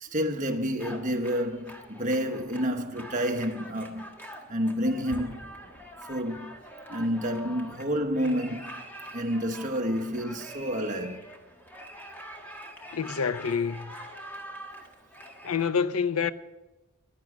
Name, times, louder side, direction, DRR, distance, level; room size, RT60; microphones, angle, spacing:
voice 1, 0.0-4.2 4.5-5.4 6.1-6.6 6.9-8.8 9.1-11.2, equal, 35° right, 1.2 m, -29 dB
sound 1, 0.8-15.6, equal, 10° left, 1.4 m, -45 dB
voice 2, 12.9-13.9 15.4-16.3, left 6 dB, 80° left, 0.6 m, -27 dB
15.0 x 11.0 x 6.2 m
head